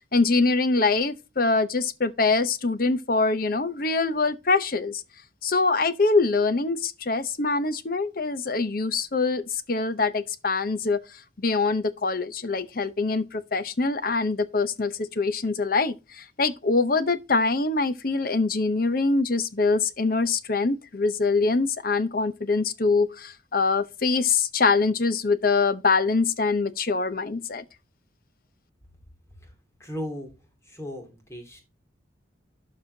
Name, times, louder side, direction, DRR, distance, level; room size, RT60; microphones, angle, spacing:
voice 1, 0.1-5.0 5.4-11.0 11.4-27.6, left 3 dB, 50° left, 0.7 m, -24 dB
voice 2, 29.8-30.3 30.6-31.6, equal, 15° left, 2.5 m, -36 dB
12.0 x 4.3 x 2.7 m
head